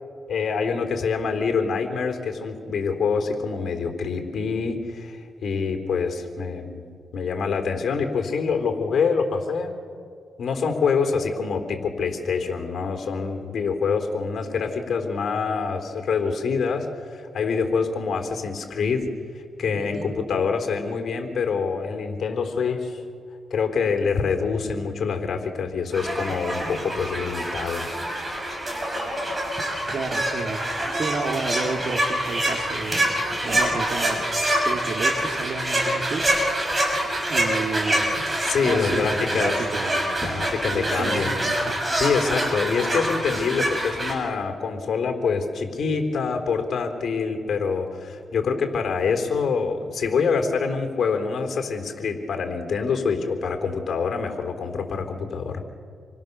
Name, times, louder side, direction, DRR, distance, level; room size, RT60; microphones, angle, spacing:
voice 1, 0.3-6.8 7.1-9.7 10.4-19.1 19.3-23.0 23.5-27.9 38.4-39.6 40.2-41.4 42.0-55.6, left 5 dB, 60° left, 4 dB, 3.7 m, -25 dB
voice 2, 19.7-20.1 29.9-30.7 30.9-34.2 34.6-36.4 37.3-38.2 38.6-40.1 40.7-42.0, right 4 dB, 60° right, 4 dB, 2.8 m, -31 dB
sound 1, 25.9-44.1, right 1 dB, 20° right, 5.9 m, -26 dB
28.0 x 23.5 x 6.9 m, 2.2 s
cardioid pair, 95°, 0 cm